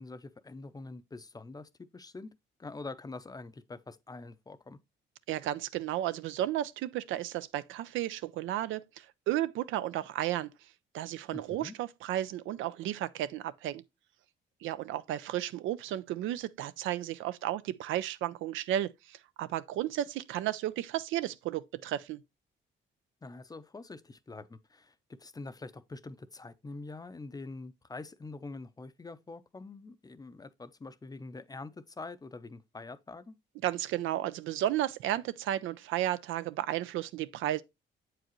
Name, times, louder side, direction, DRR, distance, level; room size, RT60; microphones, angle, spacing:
voice 1, 0.0-2.3 2.6-4.8 11.3-11.7 23.2-33.4, left 3 dB, 20° left, 0.5 m, -45 dB
voice 2, 5.3-10.5 10.9-13.8 14.6-22.2 33.6-37.6, right 13 dB, 85° right, 0.4 m, -33 dB
7.6 x 4.8 x 3.0 m
cardioid pair, 90°, 20 cm